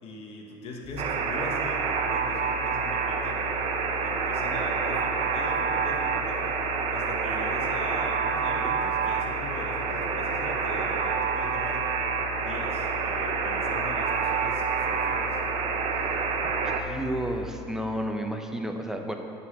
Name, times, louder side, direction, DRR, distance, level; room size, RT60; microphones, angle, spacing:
voice 1, 0.0-3.7 4.0-6.5 6.9-12.0 12.4-15.4, left 2 dB, 55° left, 0 dB, 1.2 m, -41 dB
sound 1, 0.8-17.5, left 12 dB, 35° left, 1.4 m, -40 dB
Alarm, 1.0-16.8, right 6 dB, 60° right, 0.8 m, -28 dB
voice 2, 16.6-19.1, right 1 dB, 5° right, 3 dB, 0.8 m, -31 dB
9.7 x 4.3 x 7.2 m, 2.6 s
supercardioid pair, 100°, 12 cm